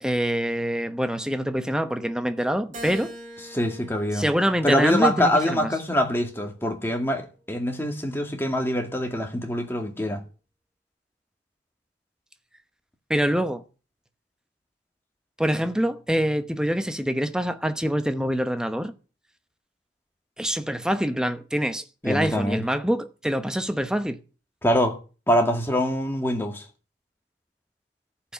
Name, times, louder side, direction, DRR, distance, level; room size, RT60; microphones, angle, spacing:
voice 1, 0.0-3.1 4.1-5.7 13.1-13.6 15.4-18.9 20.4-24.2, equal, 5° right, 0.8 m, -25 dB
Keyboard (musical), 2.7-5.2 5.8-7.0, right 1 dB, 40° right, 3.2 m, -43 dB
voice 2, 3.5-4.2 4.6-10.2 22.0-22.6 24.6-25.0 25.3-26.6, equal, 10° left, 2.1 m, -24 dB
14.0 x 5.9 x 8.6 m
head